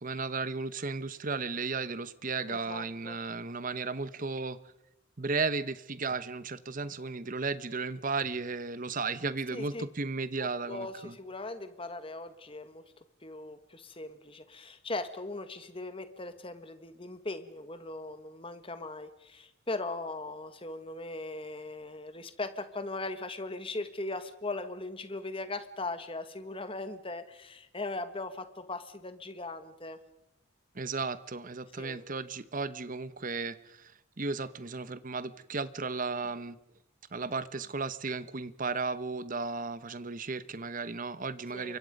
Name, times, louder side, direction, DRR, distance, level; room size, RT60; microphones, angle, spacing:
voice 1, 0.0-4.6 5.2-11.1 30.7-33.9 34.2-36.6 37.1-41.8, right 4 dB, 40° right, 15 dB, 0.9 m, -34 dB
voice 2, 2.5-3.2 9.5-9.8 10.4-12.8 13.2-30.0 31.8-32.0 41.5-41.8, left 2 dB, 25° left, 10 dB, 1.6 m, -39 dB
29.0 x 24.0 x 5.3 m, 0.89 s
head